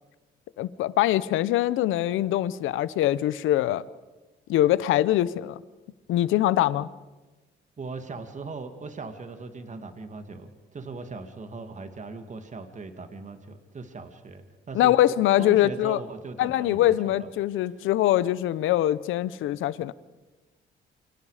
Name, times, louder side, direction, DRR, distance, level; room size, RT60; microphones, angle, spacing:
voice 1, 0.6-3.8 4.5-5.6 6.1-6.9 14.7-16.0 16.4-19.9, left 13 dB, 85° left, 0.8 m, -23 dB
voice 2, 7.8-15.0 15.4-17.3, right 4 dB, 40° right, 2.3 m, -39 dB
29.0 x 25.5 x 5.0 m
cardioid pair, 90°, 20 cm